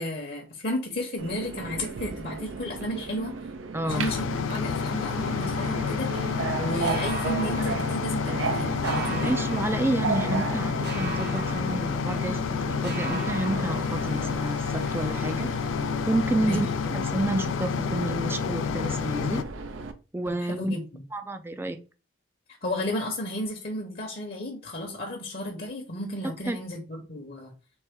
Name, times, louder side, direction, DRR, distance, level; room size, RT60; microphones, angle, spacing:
voice 1, 0.0-3.4 3.8-9.3 16.4-17.0 20.4-21.0 22.6-27.5, left 1 dB, 50° left, 1 dB, 0.9 m, -33 dB
Subway metro underground, 1.2-19.9, right 4 dB, 85° right, 0.5 m, -35 dB
voice 2, 3.7-4.1 9.2-15.5 16.1-16.7 16.9-19.5 20.1-20.7 21.1-21.8 26.5-26.6, right 2 dB, 10° right, 9 dB, 0.3 m, -30 dB
sound 1, 3.9-19.4, left 6 dB, 80° left, 0.3 m, -29 dB
sound 2, 6.8-8.5 8.8-10.5 10.8-12.6 12.8-14.5, right 3 dB, 55° right, 1.0 m, -40 dB
4.3 x 3.2 x 3.6 m, 0.34 s
head